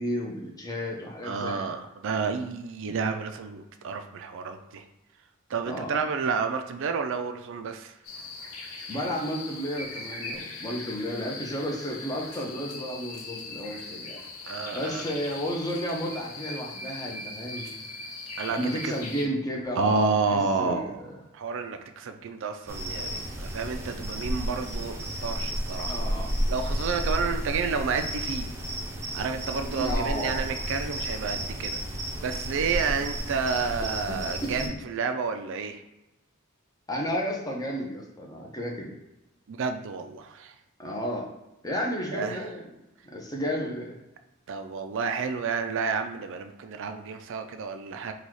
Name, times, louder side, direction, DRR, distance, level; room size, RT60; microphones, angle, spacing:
voice 1, 0.0-1.7 5.6-6.0 8.9-14.2 14.7-17.7 18.5-21.1 25.9-26.3 29.7-30.4 34.1-34.2 34.6-34.7 36.9-38.9 40.8-41.3 41.6-42.6 43.0-43.9, equal, 20° left, -1 dB, 0.8 m, -32 dB
voice 2, 1.2-4.8 5.5-7.9 14.5-15.0 18.4-18.9 19.7-21.0 21.3-25.9 26.5-28.5 29.1-31.8 32.2-35.8 39.5-40.5 42.1-42.5 44.5-48.1, right 5 dB, 65° right, 7 dB, 0.4 m, -30 dB
sound 1, 8.0-19.3, left 3 dB, 80° left, 1.0 m, -40 dB
sound 2, 22.7-34.7, equal, 15° right, 0.7 m, -32 dB
4.1 x 2.3 x 4.6 m, 0.94 s
head